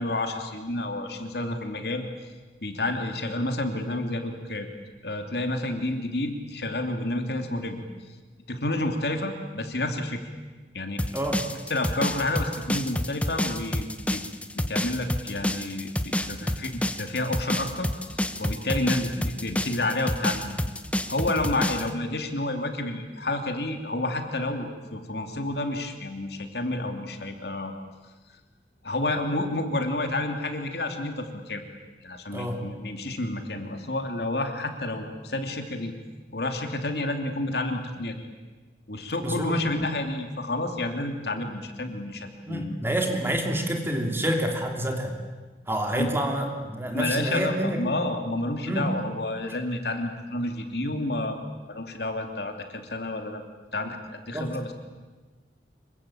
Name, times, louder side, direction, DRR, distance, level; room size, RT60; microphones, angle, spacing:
voice 1, 0.0-2.0 2.6-4.7 5.0-7.8 8.5-10.2 10.7-11.0 11.7-14.2 14.7-20.6 21.1-27.7 28.8-31.6 32.0-35.9 36.3-38.3 38.9-42.8 46.0-46.1 46.9-51.4 51.7-53.4 53.7-54.7, left 2 dB, 65° left, 5 dB, 3.0 m, -30 dB
sound 1, 11.0-21.9, left 1 dB, 10° left, 1.0 m, -28 dB
voice 2, 11.1-11.4 32.3-32.7 39.2-39.6 42.5-45.2 45.7-48.0 48.6-48.9 54.3-54.5, right 1 dB, 15° right, 3 dB, 3.0 m, -28 dB
26.5 x 23.5 x 8.8 m, 1.3 s
head